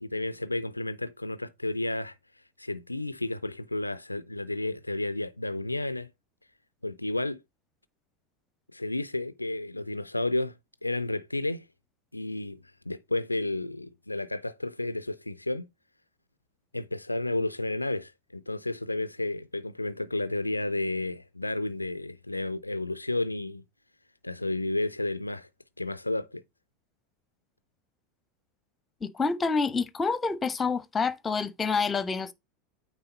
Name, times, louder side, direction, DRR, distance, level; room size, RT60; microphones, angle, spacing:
voice 1, 0.0-2.2 2.6-6.1 6.8-7.4 8.7-10.6 10.8-11.7 12.1-15.7 16.7-23.6 24.2-25.5 25.8-26.4, left 2 dB, 90° left, 0.3 m, -32 dB
voice 2, 29.0-32.3, left 4 dB, 20° left, 0.8 m, -28 dB
8.9 x 3.6 x 3.9 m
figure-of-eight pair, 80°, 0 cm